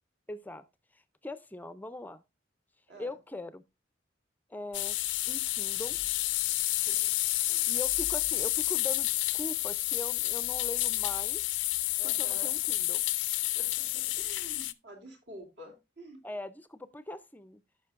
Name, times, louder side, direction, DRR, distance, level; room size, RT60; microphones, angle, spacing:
voice 1, 0.3-0.6 1.2-2.2 3.0-3.6 4.5-5.0 5.3-6.0 7.7-11.4 12.0-13.0 16.2-17.6, left 1 dB, 10° left, 0.4 m, -41 dB
sound 1, 4.7-14.7, left 17 dB, 85° left, 0.5 m, -30 dB
voice 2, 6.6-7.1 7.5-7.6 12.0-12.6 13.4-16.2, right 1 dB, 70° right, 2.7 m, -50 dB
14.0 x 5.7 x 2.4 m
head